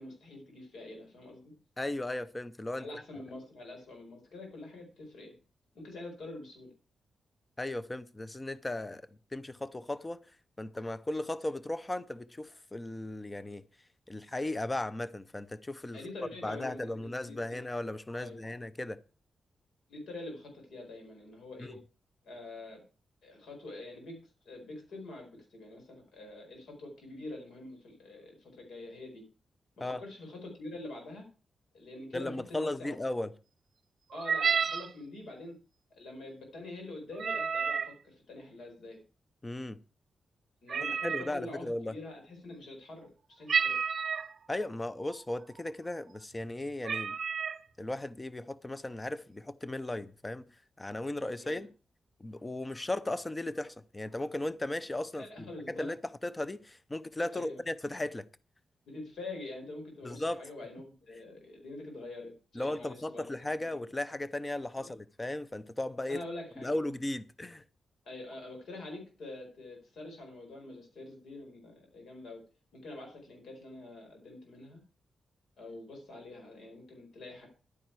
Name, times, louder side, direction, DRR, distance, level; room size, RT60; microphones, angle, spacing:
voice 1, 0.0-1.4 2.8-5.3 5.7-6.7 15.9-17.6 18.2-18.5 19.9-21.8 22.2-22.8 23.2-29.2 29.8-31.3 31.7-33.0 34.1-35.6 35.9-39.0 40.6-43.8 51.4-51.7 55.2-55.9 57.3-57.6 58.9-63.3 63.6-63.7 64.8-64.9 66.1-66.8 68.0-72.4 72.7-74.8 75.6-77.5, left 2 dB, 75° left, 4.3 m, -45 dB
voice 2, 1.8-3.0 7.6-10.2 10.6-13.7 14.1-16.0 16.4-19.0 21.6-21.8 29.8-30.0 32.1-33.3 39.4-39.8 41.0-41.9 44.5-47.2 47.8-50.4 50.8-51.7 52.2-56.0 56.2-58.2 60.0-60.4 62.6-66.2 66.6-67.6, left 1 dB, 15° left, 0.5 m, -36 dB
sound 1, 34.1-34.9 37.1-37.9 40.7-41.3 43.5-44.3 45.1-45.2 45.6-45.9 46.4-46.5 46.8-47.6, right 6 dB, 50° right, 0.6 m, -30 dB
11.0 x 9.2 x 4.6 m
wide cardioid pair, 130°, 0 cm